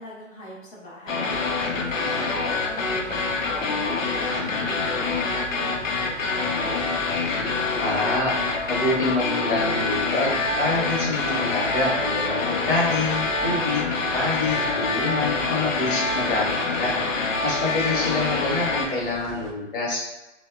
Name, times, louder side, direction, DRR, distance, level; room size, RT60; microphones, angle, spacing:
voice 1, 0.0-1.4 1.8-6.3, left 1 dB, 25° left, -9 dB, 0.4 m, -40 dB
sound 1, 1.1-18.9, left 3 dB, 80° left, 0.6 m, -26 dB
sound 2, 1.3-19.5, right 3 dB, 50° right, 0.4 m, -41 dB
voice 2, 7.8-8.4 8.7-17.0 17.4-20.0, left 2 dB, 45° left, -3 dB, 0.9 m, -26 dB
2.7 x 2.0 x 2.2 m, 1.0 s
figure-of-eight pair, 130°, 38 cm